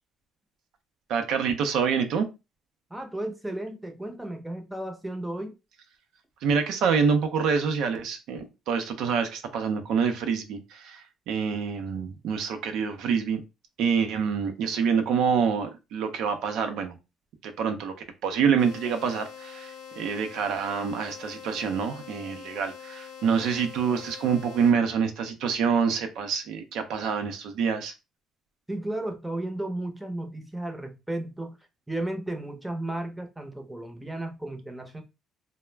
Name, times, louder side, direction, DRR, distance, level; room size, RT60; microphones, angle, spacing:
voice 1, 1.1-2.3 6.4-13.4 13.8-17.0 17.4-17.9 18.2-27.9, right 6 dB, 75° right, 0.5 m, -26 dB
voice 2, 2.9-5.6 28.7-31.6 31.9-35.0, right 1 dB, 5° right, 0.6 m, -34 dB
sound 1, 18.6-24.7, left 8 dB, 85° left, 0.6 m, -44 dB
2.3 x 2.0 x 3.2 m
cardioid pair, 90°, 0 cm